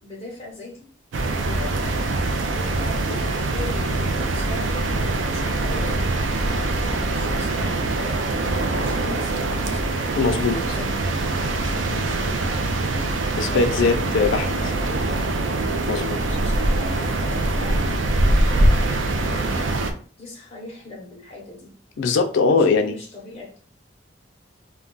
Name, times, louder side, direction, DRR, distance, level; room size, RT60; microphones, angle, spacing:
voice 1, 0.0-0.9 1.2-1.9 2.5-3.1 3.5-6.1 6.6-8.5 8.8-10.0 10.3-12.6 13.4-15.1 15.8-21.8 22.5-23.6, left 2 dB, 30° left, 0.7 m, -39 dB
sound 1, 1.1-19.9, right 2 dB, 80° right, 0.5 m, -23 dB
voice 2, 10.2-10.6 13.4-14.5 15.9-16.2 22.0-22.9, left 4 dB, 75° left, 0.4 m, -20 dB
2.3 x 2.1 x 3.8 m
head